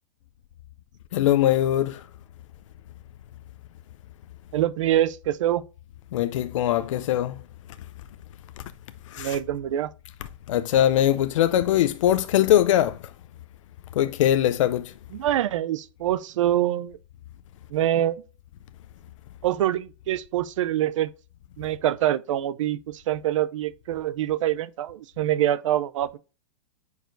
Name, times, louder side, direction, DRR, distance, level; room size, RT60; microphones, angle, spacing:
voice 1, 1.1-2.0 6.1-7.4 9.1-9.4 10.5-13.0 13.9-14.9, left 12 dB, 75° left, 0.4 m, -21 dB
voice 2, 4.5-5.6 9.2-9.9 15.1-17.0 17.7-18.2 19.4-21.1 21.6-26.2, right 12 dB, 75° right, 0.5 m, -25 dB
9.0 x 4.8 x 2.6 m
supercardioid pair, 160°, 16 cm